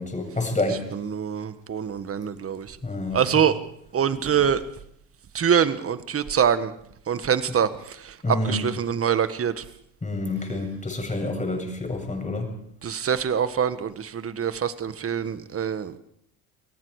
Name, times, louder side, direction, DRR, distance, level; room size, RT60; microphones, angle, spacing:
voice 1, 0.0-0.9 2.8-3.2 8.2-8.5 10.0-12.5, left 2 dB, 20° left, 4 dB, 8.0 m, -28 dB
voice 2, 0.9-2.8 3.1-3.6 3.9-4.6 5.3-6.7 7.1-9.6 12.8-16.0, right 8 dB, 35° right, 12 dB, 1.6 m, -24 dB
29.0 x 18.5 x 5.0 m, 0.70 s
hypercardioid pair, 80°, 41 cm